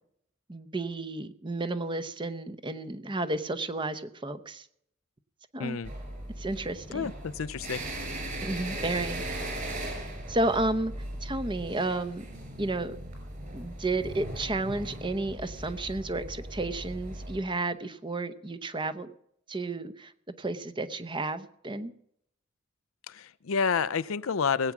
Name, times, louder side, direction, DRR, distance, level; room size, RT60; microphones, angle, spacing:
voice 1, 0.5-4.7 5.5-5.8 6.4-7.1 8.4-9.2 10.3-10.9 11.2-12.2 12.6-13.0 13.5-19.1 19.5-20.1 20.4-21.9, right 2 dB, 25° right, 10 dB, 0.8 m, -32 dB
sound 1, 5.8-17.4, right 1 dB, 40° right, 5.7 m, -38 dB
voice 2, 6.9-7.8 23.1-24.7, left 6 dB, 75° left, 16 dB, 0.5 m, -29 dB
20.0 x 8.6 x 6.0 m, 0.71 s
head